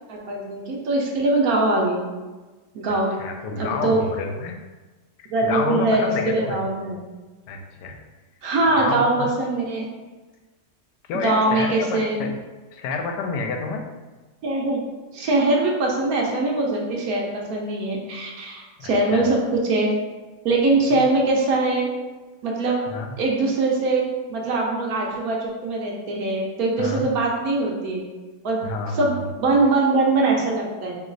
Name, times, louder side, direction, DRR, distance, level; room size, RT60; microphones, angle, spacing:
voice 1, 0.1-2.0 2.7-3.1 3.5-4.0 5.3-7.0 8.4-9.9 11.2-12.2 14.4-14.8 15.1-19.9 20.4-21.9 22.4-22.8 23.2-28.0 28.4-31.0, right 2 dB, 65° right, -1 dB, 1.1 m, -22 dB
voice 2, 3.2-4.6 5.2-6.7 7.5-8.0 8.7-9.1 11.1-12.3 12.7-13.8 18.8-19.3 20.9-21.0 22.9-23.2 26.8-27.1 28.6-29.3, left 4 dB, 80° left, 3 dB, 1.2 m, -29 dB
3.1 x 3.0 x 3.8 m, 1.2 s
omnidirectional pair, 1.8 m